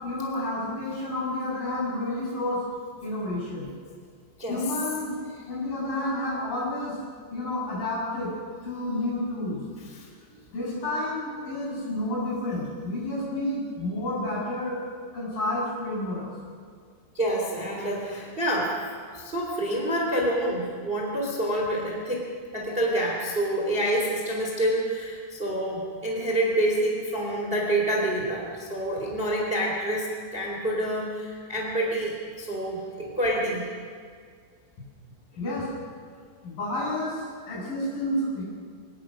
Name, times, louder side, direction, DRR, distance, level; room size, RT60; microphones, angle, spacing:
voice 1, 0.0-2.6 3.0-3.7 4.5-5.2 5.5-7.0 7.3-8.3 8.6-9.6 10.5-14.8 15.1-16.3 35.4-35.7 36.4-38.5, left 1 dB, 50° left, -5 dB, 8.4 m, -30 dB
voice 2, 4.4-4.8 5.3-5.5 9.8-10.1 17.1-18.8 19.1-33.6, right 1 dB, 15° right, -1 dB, 2.7 m, -27 dB
24.5 x 18.5 x 6.4 m, 2.1 s
omnidirectional pair, 5.0 m